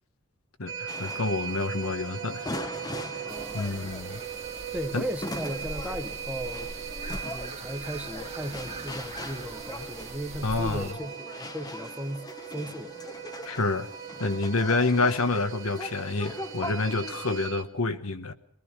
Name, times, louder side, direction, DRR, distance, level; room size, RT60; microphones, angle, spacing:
voice 1, 0.6-2.5 3.5-4.2 4.9-5.1 10.4-10.9 13.4-13.9 14.2-18.3, left 3 dB, 75° left, 1.4 m, -28 dB
sound 1, 0.7-17.6, right 9 dB, 55° right, 1.7 m, -40 dB
sound 2, 0.9-17.5, left 2 dB, 20° left, 1.0 m, -41 dB
voice 2, 3.3-3.9 4.7-6.7 7.2-12.2 12.5-12.9, equal, 5° right, 1.2 m, -36 dB
sound 3, 3.3-10.9, right 3 dB, 30° right, 2.1 m, -42 dB
23.5 x 19.0 x 6.1 m
head